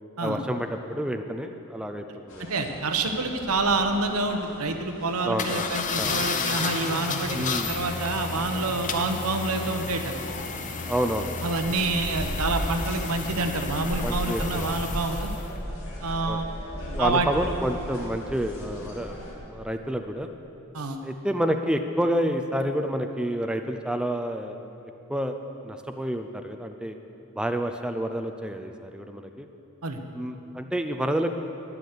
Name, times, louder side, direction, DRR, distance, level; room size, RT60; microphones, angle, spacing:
voice 1, 0.2-2.5 5.2-6.2 7.3-7.7 10.9-11.3 14.0-14.7 16.3-16.4 16.9-19.2 19.4-20.3 21.0-24.7 25.1-25.3 25.6-26.9 27.3-29.5 30.1-31.3, equal, 5° right, 6 dB, 0.5 m, -29 dB
sound 1, 2.3-19.3, equal, 65° left, 2.7 m, -37 dB
voice 2, 2.5-10.2 11.4-15.3 16.0-16.5 17.0-17.3 20.7-21.0 29.8-30.0, right 3 dB, 80° right, 5 dB, 1.1 m, -27 dB
sound 2, 5.4-15.5, left 4 dB, 35° left, 0.8 m, -32 dB
12.0 x 10.0 x 6.7 m, 2.9 s
head